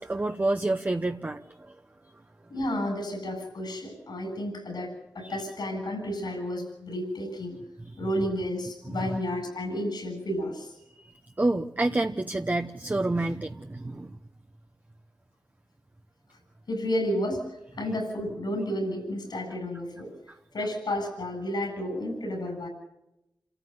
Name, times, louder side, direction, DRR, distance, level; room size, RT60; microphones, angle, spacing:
voice 1, 0.0-1.7 5.2-5.4 7.8-7.9 8.9-9.2 11.4-14.2, right 2 dB, 25° right, 5 dB, 0.9 m, -28 dB
voice 2, 2.5-7.6 8.0-10.7 16.7-20.1 20.5-22.7, equal, 80° left, 5 dB, 7.9 m, -31 dB
29.0 x 14.0 x 8.0 m, 0.86 s
wide cardioid pair, 85°, 7 cm